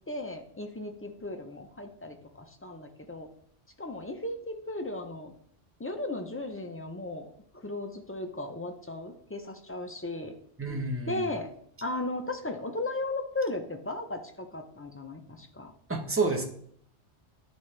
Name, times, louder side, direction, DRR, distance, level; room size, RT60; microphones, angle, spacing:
voice 1, 0.1-3.3 3.8-5.3 5.8-10.3 11.1-11.5 11.8-15.7, left 2 dB, 20° left, 5 dB, 0.3 m, -36 dB
voice 2, 10.6-11.3 15.9-16.4, right 3 dB, 15° right, 2 dB, 0.8 m, -29 dB
10.5 x 4.1 x 3.2 m, 0.66 s
omnidirectional pair, 1.1 m